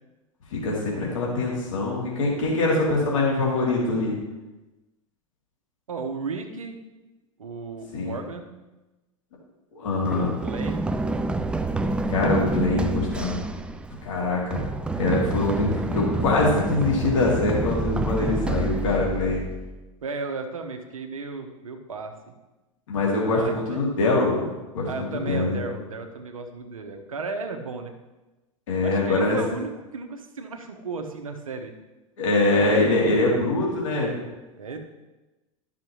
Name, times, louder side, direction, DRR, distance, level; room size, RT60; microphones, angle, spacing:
voice 1, 0.5-4.2 7.9-8.2 9.7-10.4 12.1-13.4 14.0-14.7 15.0-19.4 22.9-24.5 24.7-25.6 28.7-29.4 32.2-34.1, left 2 dB, 65° left, -4 dB, 2.4 m, -23 dB
voice 2, 5.9-6.8 7.4-8.5 10.1-10.8 20.0-22.4 23.3-23.8 24.9-27.9 28.8-31.7 32.5-32.7 34.6-34.8, right 4 dB, 75° right, 5 dB, 1.0 m, -34 dB
Run, 10.1-19.8, right 2 dB, 5° right, 0.3 m, -28 dB
12.0 x 6.1 x 3.0 m, 1.1 s
figure-of-eight pair, 90°, 17 cm